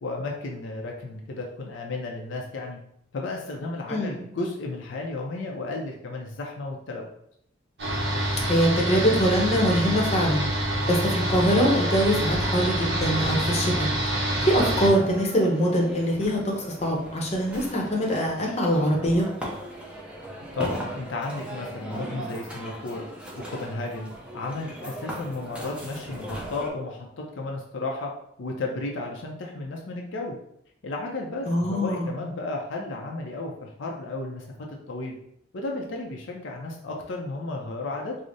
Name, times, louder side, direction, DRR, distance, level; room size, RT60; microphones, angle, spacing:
voice 1, 0.0-2.8 3.1-7.1 14.8-15.1 20.5-23.1 23.4-28.1 28.4-30.4 30.8-35.2 35.5-38.2, left 2 dB, 75° left, 0 dB, 0.5 m, -33 dB
sound 1, 7.8-14.9, right 1 dB, 60° right, 1.0 m, -26 dB
voice 2, 8.5-10.5 10.9-13.9 14.4-19.3 31.5-32.1, equal, 35° left, -1 dB, 0.7 m, -23 dB
sound 2, 10.9-26.7, right 1 dB, 5° right, 0.5 m, -39 dB
4.8 x 2.0 x 2.6 m, 0.71 s
head